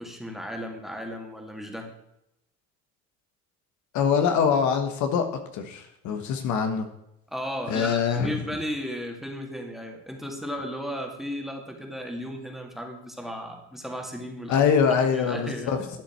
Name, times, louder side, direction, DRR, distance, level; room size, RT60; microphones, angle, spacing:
voice 1, 0.0-1.9 7.3-15.9, equal, ahead, 2 dB, 2.2 m, -35 dB
voice 2, 3.9-5.3 5.5-6.9 7.7-8.3 14.5-15.8, left 6 dB, 65° left, 7 dB, 1.5 m, -23 dB
12.5 x 8.6 x 4.6 m, 0.83 s
cardioid pair, 110°, 31 cm